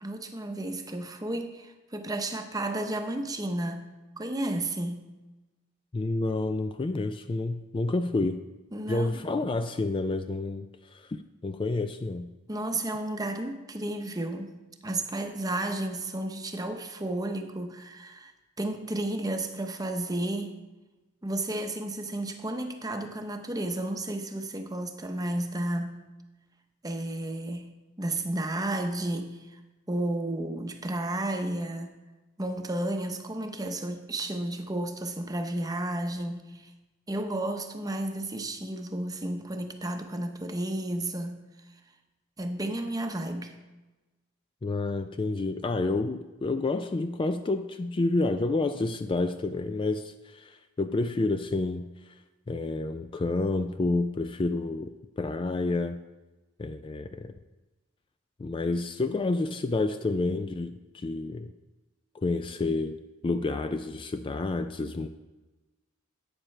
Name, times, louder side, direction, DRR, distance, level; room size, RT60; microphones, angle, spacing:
voice 1, 0.0-5.1 8.7-9.2 12.5-14.5 14.8-18.3 18.6-20.5 21.2-26.0 26.8-29.4 29.9-31.9 32.4-36.7 37.1-41.4 42.4-43.5, right 1 dB, 20° right, 6 dB, 0.8 m, -32 dB
voice 2, 5.9-8.4 8.9-10.7 10.9-12.3 44.6-51.9 52.5-56.0 56.6-57.3 58.4-61.5 62.1-63.0 63.2-65.1, left 2 dB, 25° left, 9 dB, 0.3 m, -29 dB
12.0 x 8.7 x 3.3 m, 1.1 s
head